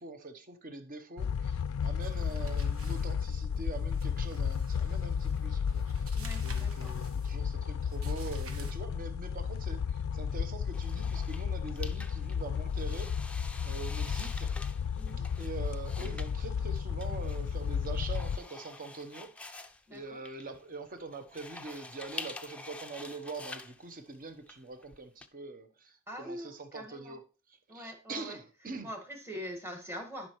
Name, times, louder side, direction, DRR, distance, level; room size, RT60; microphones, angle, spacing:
voice 1, 0.0-6.1 6.4-14.5 15.2-19.6 19.9-27.2 27.5-28.9, right 3 dB, 40° right, 0.9 m, -44 dB
sound 1, 1.2-18.4, left 7 dB, 70° left, 0.3 m, -33 dB
sound 2, 2.0-8.7, right 4 dB, 75° right, 1.4 m, -53 dB
voice 2, 6.1-6.9 14.9-15.3 19.9-20.2 26.1-27.2 27.7-28.4 28.8-30.3, equal, 10° right, 1.6 m, -43 dB
sound 3, 10.7-25.3, left 2 dB, 5° left, 0.5 m, -47 dB
11.0 x 5.6 x 3.1 m
head